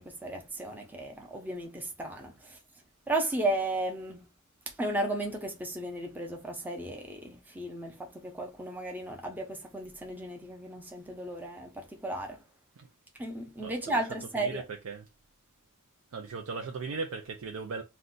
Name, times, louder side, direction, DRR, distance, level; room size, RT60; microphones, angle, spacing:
voice 1, 0.0-2.6 3.1-4.2 4.8-12.4 13.2-14.6, right 1 dB, 10° right, 0.5 m, -34 dB
voice 2, 13.6-15.1 16.1-17.8, right 4 dB, 80° right, 0.4 m, -38 dB
2.5 x 2.2 x 3.7 m
head